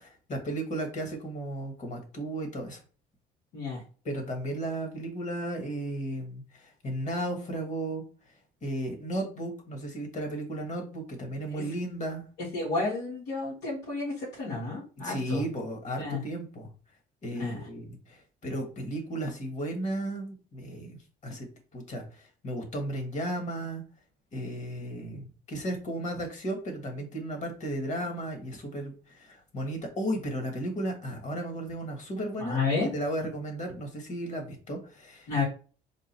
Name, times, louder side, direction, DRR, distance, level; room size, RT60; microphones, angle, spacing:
voice 1, 0.3-2.8 4.0-8.0 8.6-12.2 15.0-16.7 17.2-23.8 24.3-32.6 32.9-35.4, right 1 dB, 45° left, 3 dB, 1.5 m, -34 dB
voice 2, 12.5-15.4 16.0-16.2 17.4-17.7 32.4-32.9 35.3-35.4, left 3 dB, 90° left, -8 dB, 1.9 m, -31 dB
3.7 x 2.4 x 4.2 m, 0.38 s
cardioid pair, 110°, 17 cm